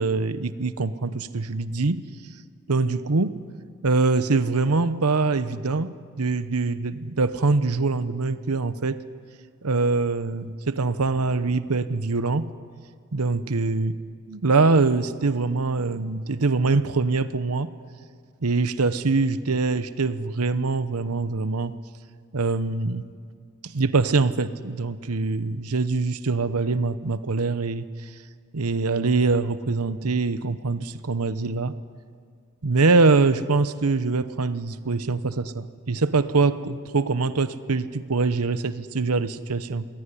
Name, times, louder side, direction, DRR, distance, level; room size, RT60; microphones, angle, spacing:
voice 1, 0.0-2.1 2.7-3.4 3.8-9.0 9.6-12.5 13.1-14.0 14.3-17.7 18.4-21.8 22.3-23.1 23.6-27.9 28.5-31.8 32.6-39.9, right 3 dB, 85° right, 13 dB, 0.9 m, -23 dB
27.5 x 20.0 x 9.9 m, 2.1 s
head